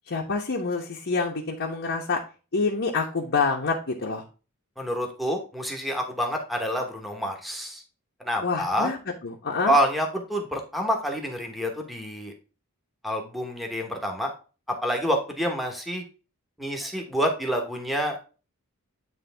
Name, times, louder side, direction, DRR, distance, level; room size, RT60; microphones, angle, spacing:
voice 1, 0.1-2.2 2.5-4.2 8.4-9.0 9.2-9.7, left 4 dB, 55° left, -2 dB, 1.0 m, -27 dB
voice 2, 4.8-7.8 8.2-8.9 9.6-12.3 13.0-14.3 14.8-16.0 16.6-18.3, equal, ahead, 2 dB, 1.1 m, -27 dB
9.4 x 3.3 x 3.4 m, 0.33 s
head